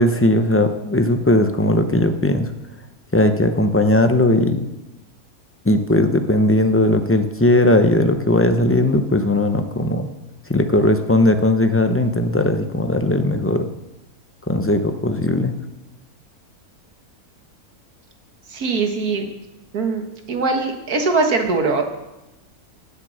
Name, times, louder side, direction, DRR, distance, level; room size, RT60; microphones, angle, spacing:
voice 1, 0.0-2.5 3.1-4.6 5.6-10.1 10.5-13.7 14.5-15.5, left 1 dB, 15° left, 7 dB, 0.6 m, -18 dB
voice 2, 18.5-19.4 19.7-21.8, right 3 dB, 80° right, 4 dB, 2.1 m, -21 dB
16.5 x 7.7 x 6.4 m, 1.0 s
omnidirectional pair, 1.6 m